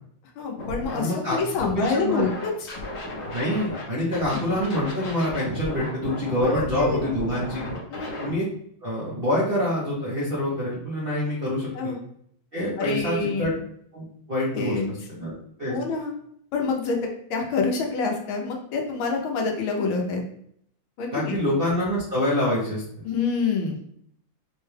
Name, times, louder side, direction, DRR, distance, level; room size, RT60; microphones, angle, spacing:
voice 1, 0.4-2.7 4.3-4.4 6.4-7.0 7.9-8.2 11.7-12.0 12.8-13.5 14.5-14.9 15.7-16.1 16.5-17.0 17.3-20.2 21.0-21.4 23.0-23.8, left 4 dB, 80° left, 1 dB, 1.5 m, -27 dB
Scratching (performance technique), 0.6-0.9 1.3-3.8 4.1-8.3, left 2 dB, 50° left, 0.8 m, -34 dB
voice 2, 0.9-2.3 3.3-7.6 8.2-8.5 8.8-11.9 12.5-13.5 13.9-15.3 15.6-15.8 21.1-22.8, left 1 dB, 55° right, -6 dB, 0.6 m, -26 dB
4.7 x 2.2 x 3.2 m, 0.68 s
omnidirectional pair, 2.3 m